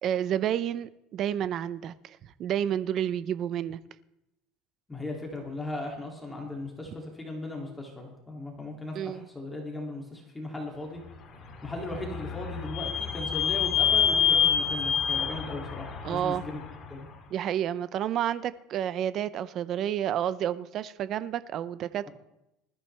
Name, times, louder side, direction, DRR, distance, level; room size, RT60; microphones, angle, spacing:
voice 1, 0.0-3.8 8.9-9.3 16.0-16.5 17.3-22.1, right 10 dB, 40° right, 0.6 m, -30 dB
voice 2, 4.9-11.0 11.6-16.6 16.9-17.1, left 2 dB, 10° left, 2.6 m, -37 dB
Vehicle / Squeak, 11.3-16.9, left 8 dB, 35° left, 2.3 m, -27 dB
20.0 x 14.0 x 3.4 m
cardioid pair, 155°, 0 cm